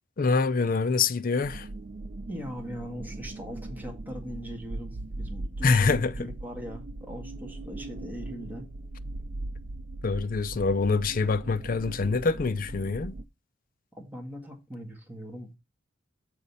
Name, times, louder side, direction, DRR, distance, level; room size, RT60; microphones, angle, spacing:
voice 1, 0.2-1.7 5.6-6.3 10.0-13.2, left 4 dB, 45° left, 0.5 m, -25 dB
sound 1, 1.4-13.2, right 2 dB, 40° right, 0.4 m, -39 dB
voice 2, 2.3-8.7 13.9-15.5, equal, 10° right, 1.8 m, -40 dB
6.8 x 4.9 x 5.5 m
head